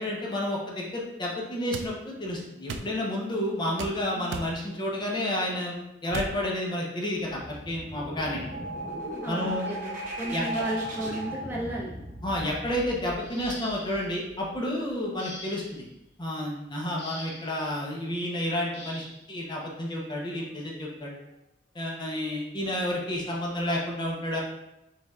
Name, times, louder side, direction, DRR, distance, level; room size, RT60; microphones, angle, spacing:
voice 1, 0.0-8.4 9.3-9.7 10.3-10.6 12.2-15.8 16.2-21.1 21.7-24.4, left 1 dB, 25° left, -2 dB, 0.7 m, -30 dB
sound 1, 1.7-1.9 2.7-2.9 3.8-4.0 4.3-4.5 6.1-6.4, right 3 dB, 85° right, 0.4 m, -34 dB
voice 2, 4.1-4.5 9.2-11.9, right 1 dB, 10° right, -4 dB, 0.6 m, -34 dB
sound 2, 7.3-14.8, right 1 dB, 50° right, 0.9 m, -37 dB
sound 3, 13.2-14.1 15.2-15.8 17.0-17.6 18.7-19.2 20.4-20.5 21.1-21.3, left 2 dB, 85° left, 1.4 m, -44 dB
5.0 x 3.4 x 2.3 m, 0.91 s
head